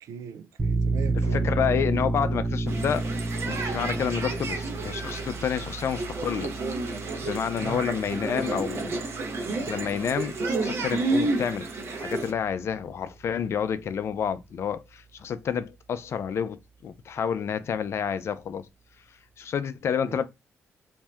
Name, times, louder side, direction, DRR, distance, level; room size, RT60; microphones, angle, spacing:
voice 1, 0.0-1.6 7.6-7.9 20.0-20.2, right 6 dB, 80° right, 0.4 m, -39 dB
sound 1, 0.6-11.9, right 3 dB, 20° right, 0.6 m, -31 dB
voice 2, 1.2-3.0 3.5-6.5 7.2-9.0 9.7-11.7 11.9-18.7 19.4-20.3, left 7 dB, 60° left, 0.4 m, -29 dB
sound 2, 2.7-12.3, right 3 dB, 60° right, 0.7 m, -31 dB
2.6 x 2.1 x 3.3 m
cardioid pair, 85°, 5 cm